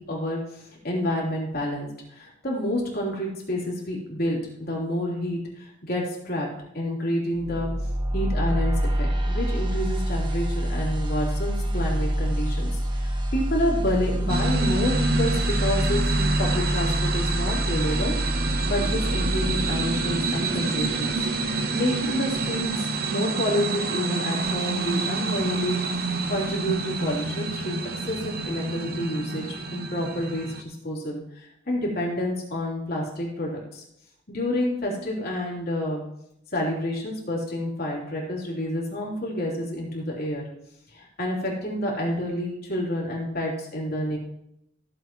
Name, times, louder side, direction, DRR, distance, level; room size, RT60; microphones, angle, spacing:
voice 1, 0.0-6.5 6.7-7.7 8.1-8.7 9.0-15.3 15.6-18.1 18.6-25.8 26.3-27.8 28.0-33.8 34.3-36.0 36.5-40.4 40.9-44.2, left 1 dB, 55° left, -4 dB, 3.3 m, -29 dB
sound 1, 7.3-20.4, equal, 25° right, 1.0 m, -27 dB
sound 2, 14.3-30.6, right 3 dB, 55° right, 0.9 m, -28 dB
15.0 x 7.6 x 3.1 m, 0.79 s
head